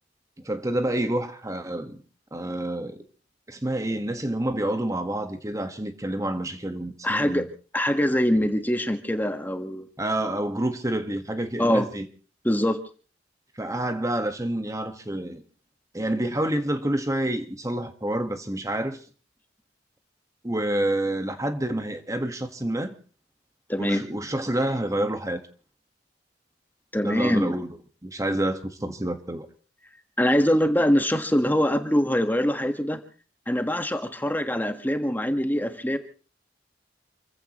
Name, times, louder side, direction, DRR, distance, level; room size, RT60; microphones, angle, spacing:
voice 1, 0.4-2.0 2.3-3.0 3.5-7.4 10.0-12.0 13.5-15.4 15.9-19.0 20.4-22.9 23.8-25.4 27.0-27.8 28.0-29.5, right 1 dB, 20° right, 1.5 m, -28 dB
voice 2, 7.0-7.4 7.7-9.9 11.6-11.9 12.4-12.8 23.7-24.0 26.9-27.6 30.2-33.0 33.5-36.0, equal, 10° left, 1.5 m, -23 dB
29.0 x 15.5 x 3.1 m
head